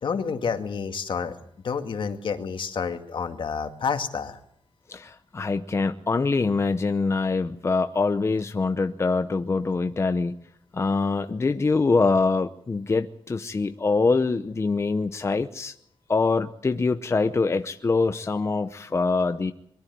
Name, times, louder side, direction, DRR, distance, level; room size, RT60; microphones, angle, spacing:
voice 1, 0.0-1.3 1.6-4.4, left 6 dB, 65° left, 7 dB, 2.1 m, -29 dB
voice 2, 4.9-10.4 10.7-15.7 16.1-19.5, left 3 dB, 30° left, 9 dB, 0.8 m, -24 dB
22.5 x 13.0 x 9.4 m, 0.73 s
wide cardioid pair, 130°, 9 cm